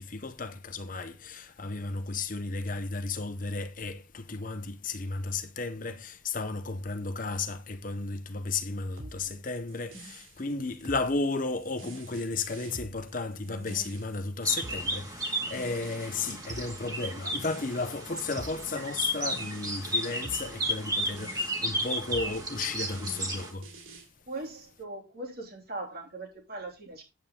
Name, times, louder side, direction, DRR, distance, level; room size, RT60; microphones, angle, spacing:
voice 1, 0.0-23.7, left 3 dB, 40° left, 0.8 m, -34 dB
voice 2, 8.8-9.4 13.3-13.9 24.3-27.0, right 2 dB, 50° right, 3.0 m, -41 dB
sound 1, 9.0-24.1, right 2 dB, 85° right, 2.7 m, -47 dB
sound 2, 14.4-23.5, right 1 dB, 20° right, 2.1 m, -33 dB
8.5 x 8.5 x 3.7 m
head